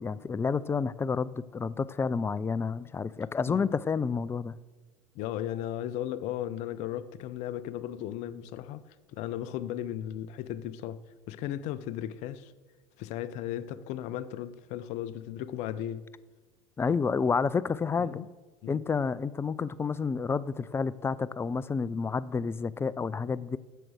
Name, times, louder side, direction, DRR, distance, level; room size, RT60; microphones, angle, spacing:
voice 1, 0.0-4.6 16.8-18.2 18.7-23.6, left 5 dB, 20° left, 0.4 m, -30 dB
voice 2, 5.1-8.8 9.1-11.0 11.3-12.5 13.0-16.0 18.0-18.3 18.6-18.8, left 11 dB, 60° left, 0.6 m, -36 dB
7.7 x 6.5 x 6.3 m
hypercardioid pair, 80°, 13 cm